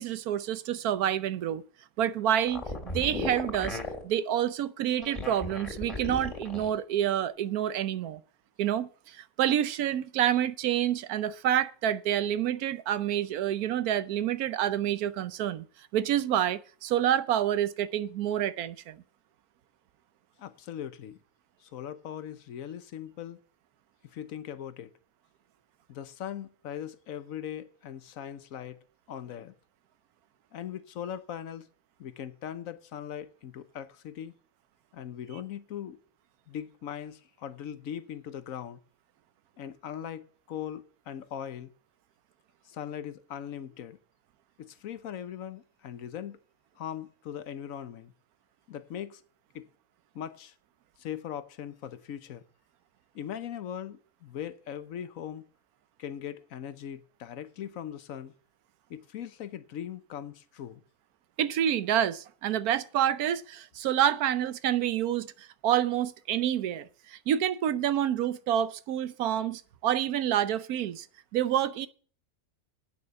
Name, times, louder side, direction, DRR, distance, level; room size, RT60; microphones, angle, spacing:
voice 1, 0.0-1.6 2.0-3.8 4.0-8.2 8.6-15.6 15.9-19.0 61.4-71.1 71.3-71.9, right 10 dB, 80° right, 1.2 m, -28 dB
sound 1, 2.4-4.0 4.9-6.8, left 2 dB, 25° left, 2.8 m, -35 dB
voice 2, 20.4-21.2 21.6-23.4 24.0-24.9 25.9-28.8 29.1-29.5 30.5-31.7 32.0-34.3 34.9-36.0 36.5-38.8 39.6-41.7 42.6-44.0 44.6-46.4 46.8-48.1 48.7-49.2 49.5-49.7 50.1-50.5 51.0-52.4 53.1-55.4 56.0-58.3 58.9-60.8, left 9 dB, 70° left, 1.1 m, -40 dB
8.8 x 6.8 x 7.4 m
omnidirectional pair, 1.6 m